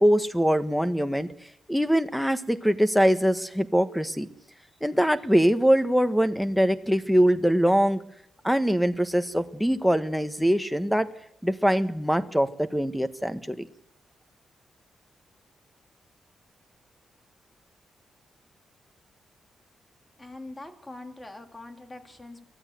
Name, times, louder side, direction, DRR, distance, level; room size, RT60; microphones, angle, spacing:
voice 1, 0.0-1.3 1.7-4.3 4.8-8.0 8.4-11.1 11.4-13.7, equal, ahead, 11 dB, 1.5 m, -23 dB
voice 2, 20.2-22.4, left 2 dB, 15° left, 6 dB, 2.9 m, -43 dB
24.0 x 16.0 x 8.0 m, 0.72 s
cardioid pair, 100°, 0 cm